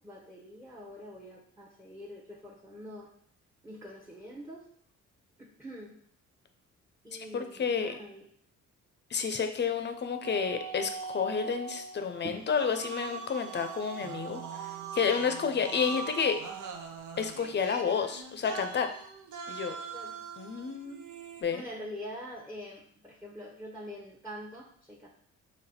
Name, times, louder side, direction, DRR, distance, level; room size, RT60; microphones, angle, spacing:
voice 1, 0.0-3.1 3.6-4.7 5.4-6.0 7.0-8.3 9.2-9.3 12.2-12.4 19.9-20.2 21.5-25.1, equal, 5° right, -1 dB, 0.8 m, -44 dB
voice 2, 7.1-7.9 9.1-14.4 14.9-16.4 17.2-18.9 19.5-19.8 20.4-21.0 21.4-21.6, left 6 dB, 35° left, 7 dB, 0.6 m, -30 dB
sound 1, 10.2-21.4, right 6 dB, 75° right, 0.7 m, -42 dB
4.1 x 3.1 x 4.3 m, 0.62 s
cardioid pair, 90°, 30 cm